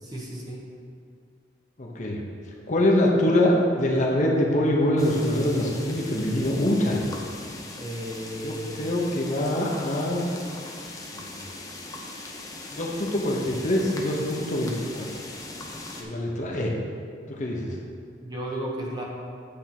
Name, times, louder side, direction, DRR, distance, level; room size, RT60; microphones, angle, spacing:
voice 1, 0.0-0.6 7.8-8.9 18.2-19.0, equal, 20° right, -3 dB, 1.1 m, -34 dB
voice 2, 1.8-2.2 2.7-7.0 8.4-10.2 11.1-11.4 12.7-15.1 16.0-16.7 17.3-17.8, left 1 dB, 40° left, -1 dB, 0.9 m, -24 dB
sound 1, 5.0-16.0, left 2 dB, 20° left, 0.7 m, -39 dB
8.5 x 3.5 x 5.9 m, 2.2 s
head